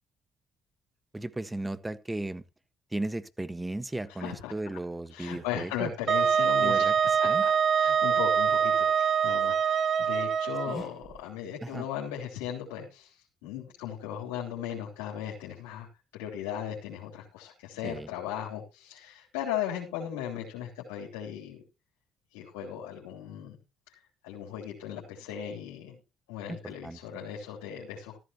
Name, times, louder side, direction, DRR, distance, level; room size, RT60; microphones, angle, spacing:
voice 1, 1.1-2.4 2.9-5.9 6.6-7.4 10.7-10.8 11.6-11.9 17.8-18.1 26.5-27.0, right 2 dB, 15° right, 1.4 m, -36 dB
voice 2, 4.2-4.5 5.1-6.9 7.2-13.2 13.4-21.6 22.3-23.6 23.9-26.0 26.3-28.2, left 9 dB, 90° left, 3.4 m, -37 dB
Wind instrument woodwind instrument, 6.1-10.8, right 7 dB, 50° right, 0.9 m, -24 dB
14.5 x 13.0 x 2.9 m
supercardioid pair, 65°, 0 cm